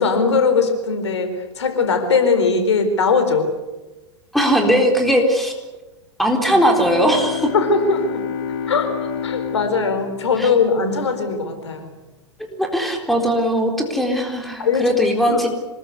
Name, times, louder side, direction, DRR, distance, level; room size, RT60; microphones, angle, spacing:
voice 1, 0.0-3.5 7.5-8.2 8.7-9.0 9.2-11.9 14.6-14.9 15.3-15.5, left 4 dB, 65° left, 7 dB, 4.5 m, -20 dB
voice 2, 4.3-5.5 6.2-7.5 10.4-10.5 12.5-15.5, equal, ahead, 3 dB, 4.1 m, -19 dB
sound 1, 6.5-11.2, left 7 dB, 45° left, 3.8 m, -29 dB
26.0 x 21.0 x 8.3 m, 1.1 s
figure-of-eight pair, 95°, 16 cm